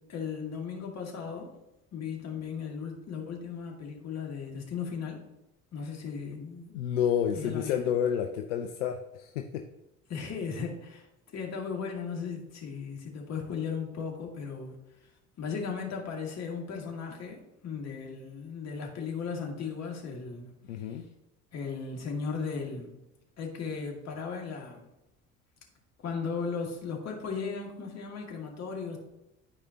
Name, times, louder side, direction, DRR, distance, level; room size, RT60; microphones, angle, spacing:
voice 1, 0.1-1.5 1.9-5.2 5.7-6.7 7.3-7.7 10.1-11.1 11.3-14.8 15.4-20.5 21.5-22.9 23.4-24.8 26.0-29.0, left 5 dB, 45° left, 1 dB, 2.1 m, -36 dB
voice 2, 6.7-9.6 20.7-21.1, left 9 dB, 80° left, 4 dB, 0.6 m, -30 dB
12.5 x 4.9 x 2.9 m, 0.92 s
hypercardioid pair, 55°, 36 cm